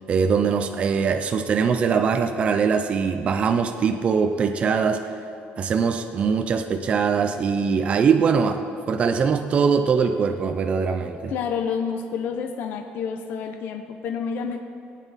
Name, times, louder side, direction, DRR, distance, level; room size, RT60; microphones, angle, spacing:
voice 1, 0.1-5.0 5.6-11.3, right 6 dB, 30° right, 7 dB, 0.5 m, -22 dB
voice 2, 11.3-14.6, left 6 dB, 60° left, 5 dB, 0.7 m, -29 dB
19.0 x 9.1 x 4.1 m, 2.6 s
cardioid pair, 155°, 4 cm